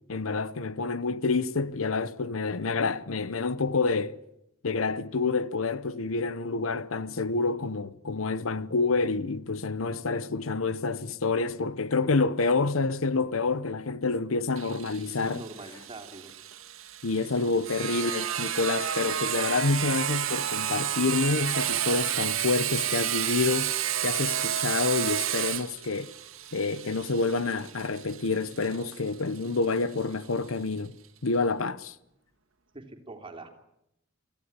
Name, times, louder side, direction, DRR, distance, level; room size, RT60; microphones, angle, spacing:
voice 1, 0.1-4.2 4.6-15.4 17.0-23.7 24.0-26.1 26.5-31.0 31.2-32.0, left 3 dB, 80° left, 0.9 m, -28 dB
Sawing, 14.6-30.0, right 10 dB, 80° right, 1.9 m, -31 dB
voice 2, 15.2-16.3 17.7-17.9 32.7-33.5, right 2 dB, 25° right, 3.1 m, -43 dB
25.0 x 15.0 x 9.8 m
head